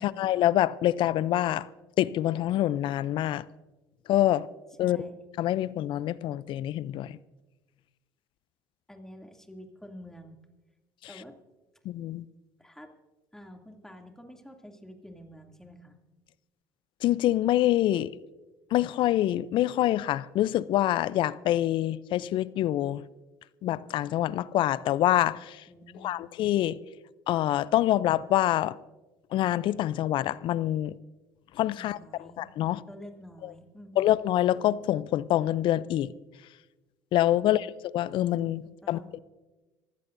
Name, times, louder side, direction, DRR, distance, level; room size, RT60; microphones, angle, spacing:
voice 1, 0.0-1.7 2.0-3.4 4.1-4.5 4.8-5.0 5.4-7.2 11.9-12.2 17.0-18.1 18.7-23.0 23.6-25.6 26.0-26.8 27.3-28.8 29.3-30.9 31.6-32.0 32.4-32.8 34.0-36.1 37.1-37.7 37.9-39.2, left 13 dB, 60° left, 0.5 m, -26 dB
voice 2, 4.8-5.2 8.9-10.4 11.1-11.3 12.6-12.9 13.3-16.0 25.7-26.2 31.7-32.5 32.9-34.1 37.4-37.7 38.8-39.1, equal, 5° left, 2.6 m, -48 dB
26.0 x 16.0 x 2.6 m
hypercardioid pair, 75°, 10 cm